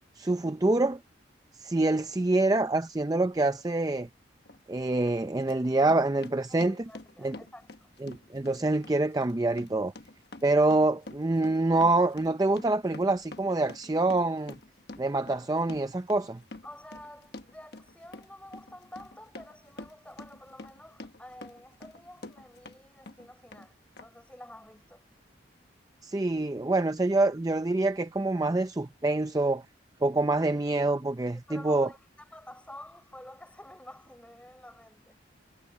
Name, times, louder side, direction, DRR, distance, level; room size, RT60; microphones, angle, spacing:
voice 1, 0.2-1.0 1.5-4.1 4.7-6.8 7.2-7.3 8.0-9.9 10.4-14.5 15.0-16.4 26.0-29.6 30.0-31.9, right 2 dB, 20° right, 0.5 m, -26 dB
Run, 4.5-4.6 5.1-22.8 23.1-23.7 24.0-24.1, left 2 dB, 60° left, 1.3 m, -47 dB
voice 2, 6.5-7.9 16.6-25.0 31.3-35.1, left 1 dB, 5° left, 5.7 m, -49 dB
head